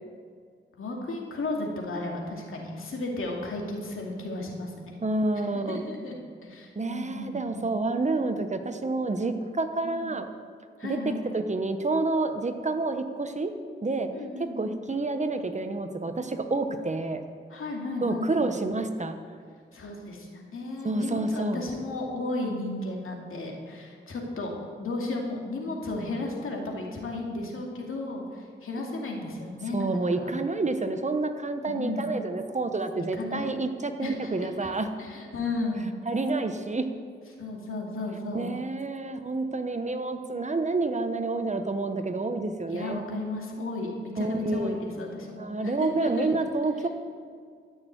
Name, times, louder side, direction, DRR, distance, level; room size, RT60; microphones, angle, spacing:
voice 1, 0.8-4.9 5.7-6.1 6.4-7.7 9.8-10.2 10.8-11.2 14.1-14.8 17.5-18.5 19.7-24.5 24.8-30.3 31.7-32.1 33.0-33.5 34.0-34.7 35.0-35.9 37.4-38.5 42.7-46.3, left 2 dB, 90° left, 0 dB, 2.5 m, -34 dB
voice 2, 5.0-5.9 6.8-10.3 10.8-13.5 13.8-14.1 14.4-17.2 18.0-19.2 20.8-21.6 29.7-34.9 36.1-36.9 38.3-43.0 44.2-44.8 45.4-46.9, right 3 dB, 35° right, 8 dB, 1.1 m, -29 dB
13.5 x 6.5 x 9.3 m, 2.1 s
wide cardioid pair, 80°, 21 cm